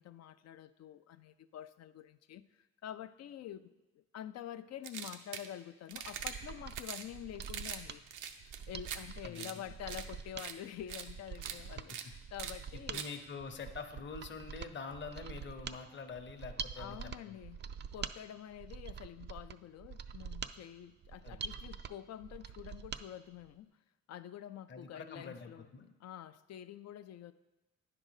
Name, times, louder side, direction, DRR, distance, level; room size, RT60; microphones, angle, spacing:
voice 1, 0.0-8.3 8.7-13.0 16.8-17.6 17.9-23.7 24.1-27.3, left 11 dB, 60° left, 13 dB, 0.4 m, -47 dB
sound 1, 4.8-5.5 5.9-6.3 6.7-7.1 7.4-7.8 8.1-9.0 9.4-9.5 9.9-10.1 10.4-10.5 10.9-11.1 11.4-11.6 11.9-12.0 12.4-12.5 12.9-13.1, right 8 dB, 85° right, 0.7 m, -42 dB
Mechanisms, 6.0-23.0 23.4-23.5, right 6 dB, 35° right, 0.4 m, -46 dB
voice 2, 9.2-9.6 12.7-17.4 21.2-21.6 24.7-25.8, left 5 dB, 40° left, 7 dB, 0.8 m, -46 dB
9.8 x 3.8 x 6.4 m, 1.1 s
cardioid pair, 90°, 30 cm